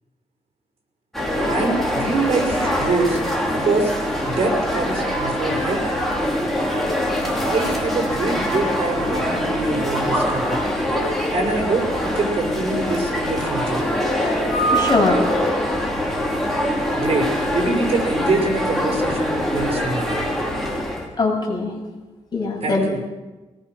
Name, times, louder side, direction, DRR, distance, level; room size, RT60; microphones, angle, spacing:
sound 1, 1.1-21.1, equal, ahead, 5.1 m, -23 dB
voice 1, 1.5-3.2 3.5-3.9 4.2-5.8 7.4-10.6 11.3-13.8 17.0-20.2 22.6-23.0, right 3 dB, 55° right, 3 dB, 5.7 m, -24 dB
voice 2, 14.7-15.2 21.2-21.7 22.3-23.0, left 3 dB, 35° left, -1 dB, 7.8 m, -21 dB
23.0 x 20.5 x 6.3 m, 1.2 s
wide cardioid pair, 115°, 12 cm